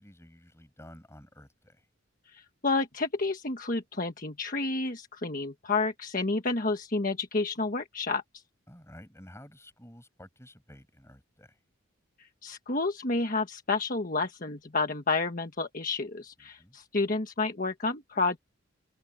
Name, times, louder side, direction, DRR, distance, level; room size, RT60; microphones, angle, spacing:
voice 1, 0.0-1.9 8.7-11.6 16.6-16.8, left 1 dB, 15° left, 7.6 m, -52 dB
voice 2, 2.3-8.4 12.2-18.4, left 3 dB, 45° left, 1.4 m, -30 dB
open air
head